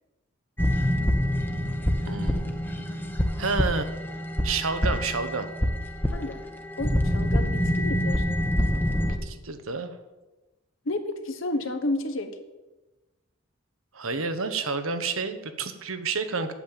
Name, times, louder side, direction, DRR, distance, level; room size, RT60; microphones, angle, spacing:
sound 1, 0.6-9.2, equal, 10° left, 0.9 m, -26 dB
voice 1, 2.1-3.1 3.4-3.9 4.4-5.5 9.2-10.0 13.9-16.5, right 4 dB, 85° right, 9 dB, 1.2 m, -30 dB
voice 2, 6.8-8.2 10.8-12.3, left 2 dB, 70° left, 7 dB, 1.3 m, -31 dB
8.5 x 7.6 x 8.9 m, 1.1 s
head